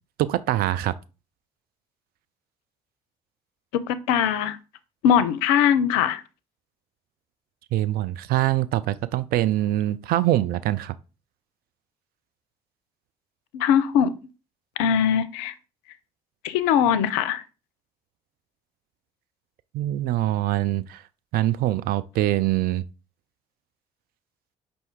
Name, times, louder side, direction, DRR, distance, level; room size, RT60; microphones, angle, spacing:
voice 1, 0.2-0.9 7.7-10.9 19.7-21.0 21.3-22.8, right 14 dB, 65° right, 0.4 m, -24 dB
voice 2, 3.9-4.6 5.0-6.2 13.5-14.1 14.8-15.5 16.4-17.4, left 8 dB, 75° left, 0.4 m, -21 dB
5.5 x 2.6 x 3.4 m
hypercardioid pair, 50°, 17 cm